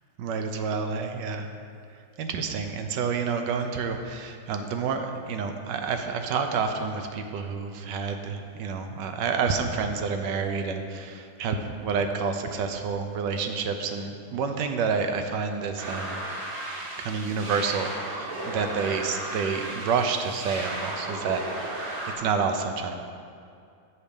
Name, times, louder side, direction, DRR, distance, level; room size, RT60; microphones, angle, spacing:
voice 1, 0.2-1.5 2.2-16.2 17.0-21.4 22.2-22.9, right 5 dB, 75° right, 6 dB, 1.3 m, -29 dB
sound 1, 15.8-22.1, right 1 dB, 55° right, 1.6 m, -35 dB
7.3 x 6.5 x 5.2 m, 2.4 s
omnidirectional pair, 2.0 m